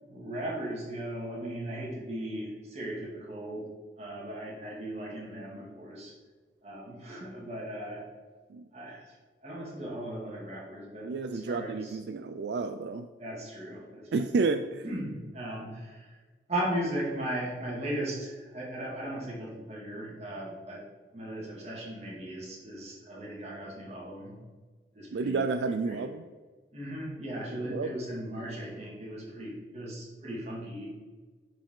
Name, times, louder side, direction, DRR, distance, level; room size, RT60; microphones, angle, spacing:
voice 1, 0.0-3.7 4.0-6.1 6.6-8.1 8.7-9.1 9.4-12.0 13.2-14.4 14.8-16.1 16.5-20.9 21.1-24.4 24.9-26.0 26.7-30.9, right 1 dB, 35° right, -3 dB, 2.2 m, -37 dB
voice 2, 11.0-13.1 14.1-14.8 25.1-26.2 27.7-27.9, right 4 dB, 80° right, 9 dB, 0.3 m, -30 dB
10.0 x 4.8 x 3.8 m, 1.4 s
head